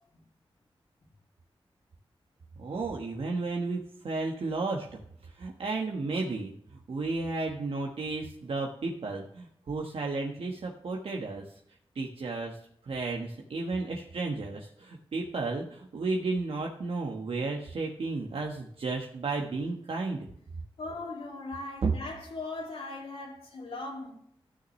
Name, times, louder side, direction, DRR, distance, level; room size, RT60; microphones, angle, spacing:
voice 1, 2.6-6.5 6.9-11.5 11.9-12.6 12.8-20.3 21.8-21.9, right 3 dB, 70° right, 1.2 m, -33 dB
voice 2, 20.8-24.1, left 2 dB, 85° left, 2.9 m, -39 dB
13.5 x 6.3 x 3.0 m
wide cardioid pair, 85°, 10 cm